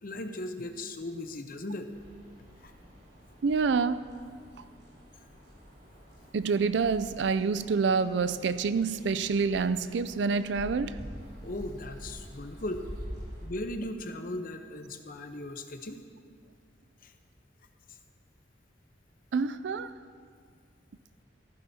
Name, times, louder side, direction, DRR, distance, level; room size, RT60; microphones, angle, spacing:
voice 1, 0.0-1.9 2.6-2.7 11.4-12.8 13.3-16.0 17.0-17.1, left 1 dB, 55° left, 6 dB, 0.8 m, -37 dB
sound 1, 1.9-13.5, equal, 65° right, 3.4 m, -47 dB
voice 2, 3.4-4.0 6.3-11.0 19.3-19.9, right 5 dB, 85° right, 13 dB, 0.4 m, -27 dB
15.0 x 14.5 x 2.8 m, 2.1 s
head